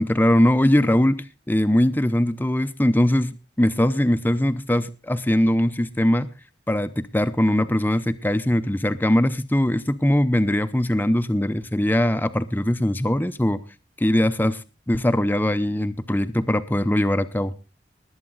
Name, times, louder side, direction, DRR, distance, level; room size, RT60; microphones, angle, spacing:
voice 1, 0.0-3.3 3.6-6.3 6.7-13.6 14.0-17.5, left 1 dB, 10° left, 11 dB, 0.6 m, -21 dB
19.5 x 8.5 x 4.0 m, 0.31 s
head